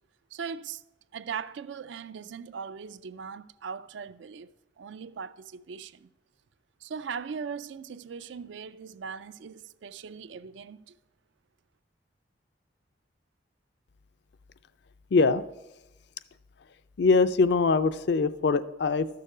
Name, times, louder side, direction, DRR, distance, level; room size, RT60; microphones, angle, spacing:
voice 1, 0.3-0.8 1.1-4.5 4.8-6.1 6.8-11.0, right 6 dB, 70° right, 0.4 m, -39 dB
voice 2, 15.1-15.4 17.0-19.1, left 4 dB, 60° left, 0.4 m, -22 dB
13.0 x 6.7 x 4.9 m
head